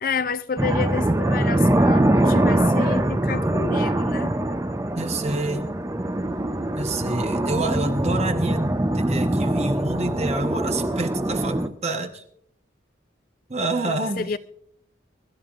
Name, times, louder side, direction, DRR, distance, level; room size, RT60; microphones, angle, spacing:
voice 1, 0.0-4.3 13.9-14.4, left 5 dB, 45° left, 0.4 m, -29 dB
sound 1, 0.6-11.7, right 1 dB, 15° right, 0.5 m, -23 dB
voice 2, 5.0-5.7 6.7-8.7 8.9-12.2 13.5-14.3, right 2 dB, 35° right, 1.0 m, -28 dB
sound 2, 6.0-11.6, right 1 dB, 90° right, 2.3 m, -44 dB
24.0 x 13.0 x 2.5 m
head